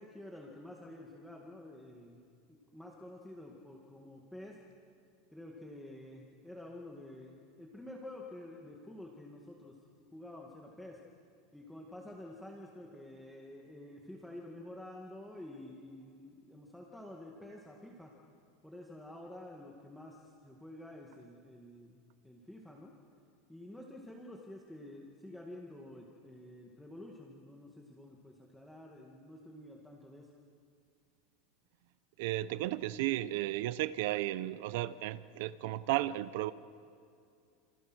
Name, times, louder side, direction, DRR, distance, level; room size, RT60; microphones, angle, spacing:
voice 1, 0.0-2.2 2.5-4.6 5.3-9.8 10.1-11.0 11.5-18.1 18.6-22.0 22.2-23.0 23.5-30.3, left 1 dB, 5° left, 2.0 m, -49 dB
voice 2, 32.2-36.5, right 15 dB, 60° right, 0.8 m, -34 dB
29.0 x 27.5 x 6.3 m
supercardioid pair, 160°, 0 cm